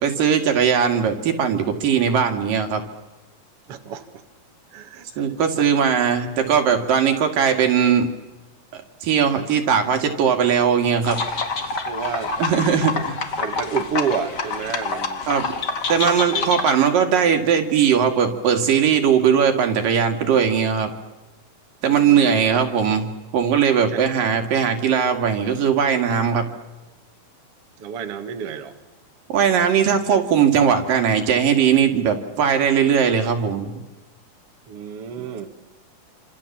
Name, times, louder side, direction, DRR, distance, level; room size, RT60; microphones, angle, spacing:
voice 1, 0.0-2.8 5.2-8.1 8.7-11.2 12.4-13.2 15.3-15.5 15.9-20.9 21.8-26.5 29.3-33.8, right 7 dB, 75° right, 5 dB, 3.9 m, -19 dB
voice 2, 3.7-4.0 4.7-5.3 5.6-5.7 7.4-7.5 9.2-9.6 11.9-13.1 13.4-15.2 16.3-16.5 21.9-22.6 23.8-24.0 27.8-28.7 34.7-35.5, right 7 dB, 50° right, 6 dB, 2.2 m, -30 dB
sound 1, 11.0-16.7, left 4 dB, 35° left, 2.0 m, -27 dB
28.5 x 27.0 x 7.4 m, 1.1 s
omnidirectional pair, 4.0 m